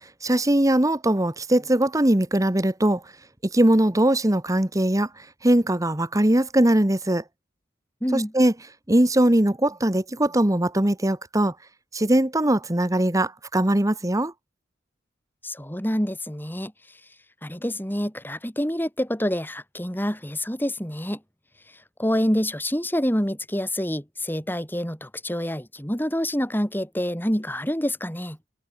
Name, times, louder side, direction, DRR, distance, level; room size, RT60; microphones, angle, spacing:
voice 1, 0.2-3.0 3.5-5.1 5.4-7.2 8.1-8.5 8.9-11.5 11.9-14.3, right 1 dB, 15° right, 1.1 m, -21 dB
voice 2, 8.0-8.3 15.4-16.7 17.4-21.2 22.0-28.4, equal, 10° left, 5.0 m, -27 dB
head